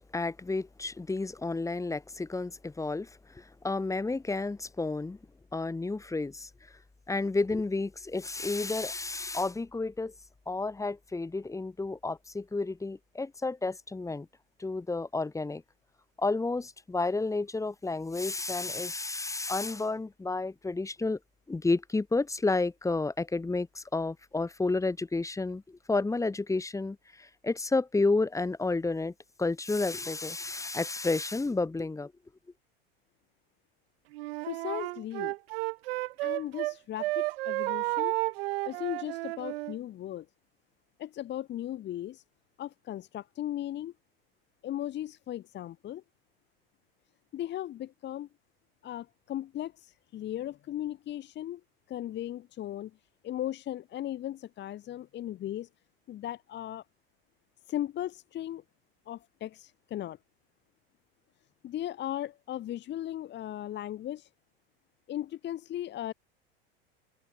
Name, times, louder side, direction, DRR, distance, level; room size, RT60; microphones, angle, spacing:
voice 1, 0.0-5.2 5.5-6.7 7.1-10.1 10.5-14.3 14.6-15.6 16.2-21.2 21.5-32.1, left 3 dB, 10° left, 3.7 m, -31 dB
Wind instrument woodwind instrument, 34.1-36.7 37.0-39.8, right 20 dB, 70° right, 1.5 m, -32 dB
voice 2, 34.4-35.3 36.2-38.1 38.7-40.3 41.0-42.2 42.6-43.9 44.6-46.0 47.3-48.3 48.8-51.6 51.9-52.9 53.2-55.7 56.1-56.8 57.7-58.6 59.1-60.2 61.6-64.3 65.1-66.1, left 12 dB, 35° left, 1.8 m, -37 dB
hypercardioid pair, 110°, 31 cm